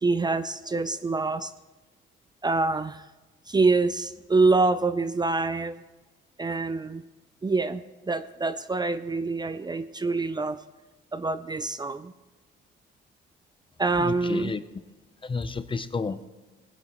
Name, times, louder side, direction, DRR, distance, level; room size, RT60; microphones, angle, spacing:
voice 1, 0.0-1.5 2.4-3.0 3.5-5.8 6.4-7.0 7.4-7.8 8.1-10.6 11.1-12.1 13.8-14.5, right 3 dB, 20° right, 12 dB, 0.5 m, -25 dB
voice 2, 14.0-14.6 15.2-16.3, left 4 dB, 25° left, 13 dB, 0.6 m, -31 dB
18.5 x 10.0 x 3.0 m, 1.2 s
cardioid pair, 90°, 20 cm